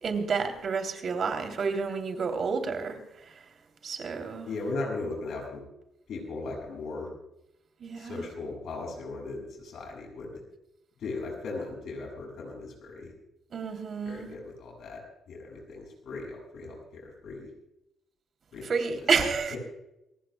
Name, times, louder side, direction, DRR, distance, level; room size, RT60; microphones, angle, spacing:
voice 1, 0.0-3.0 3.8-4.5 7.8-8.2 13.5-14.3 18.7-19.6, right 5 dB, 55° right, 6 dB, 3.1 m, -29 dB
voice 2, 4.5-5.6 6.1-7.1 8.0-10.4 11.0-13.1 14.0-15.0 15.3-17.5 18.5-19.1 19.5-19.6, left 3 dB, 70° left, 0 dB, 7.0 m, -37 dB
28.0 x 16.0 x 2.3 m, 0.90 s
cardioid pair, 90°, 0 cm